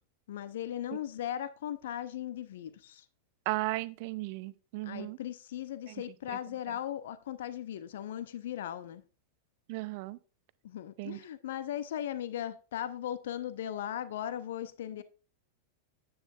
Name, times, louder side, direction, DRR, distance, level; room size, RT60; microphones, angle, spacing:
voice 1, 0.3-3.0 4.8-9.0 10.6-15.0, left 11 dB, 60° left, 0.7 m, -38 dB
voice 2, 3.5-5.2 9.7-10.2 11.0-11.2, right 20 dB, 45° right, 0.6 m, -35 dB
9.6 x 9.5 x 2.4 m
figure-of-eight pair, 90°, 0 cm